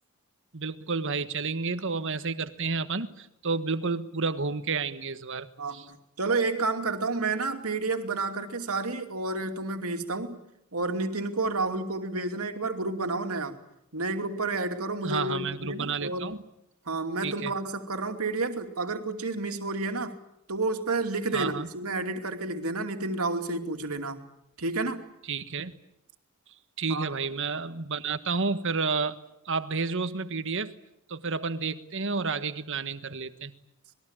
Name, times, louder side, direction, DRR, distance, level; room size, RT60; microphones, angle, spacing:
voice 1, 0.5-5.9 15.0-16.4 17.2-17.5 21.3-21.7 25.3-25.7 26.8-29.2 29.4-30.8 31.1-33.5, right 4 dB, 60° right, 1.4 m, -30 dB
voice 2, 5.6-10.4 10.7-13.6 13.9-16.3 16.9-20.1 20.5-24.3 24.6-25.0 26.9-27.1, right 3 dB, 85° right, 2.7 m, -30 dB
26.5 x 21.0 x 9.0 m
head